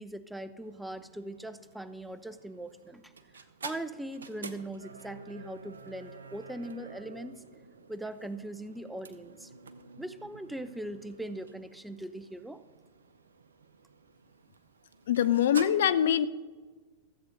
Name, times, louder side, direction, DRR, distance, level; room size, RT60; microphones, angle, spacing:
voice 1, 0.0-3.1 3.6-7.4 7.9-9.5 10.0-12.6, right 1 dB, 5° right, 13 dB, 0.5 m, -40 dB
sound 1, 0.6-15.7, right 4 dB, 80° right, 0.6 m, -49 dB
voice 2, 15.1-16.3, left 10 dB, 65° left, 15 dB, 0.4 m, -24 dB
13.5 x 7.8 x 3.9 m, 1.4 s
figure-of-eight pair, 95°, 0 cm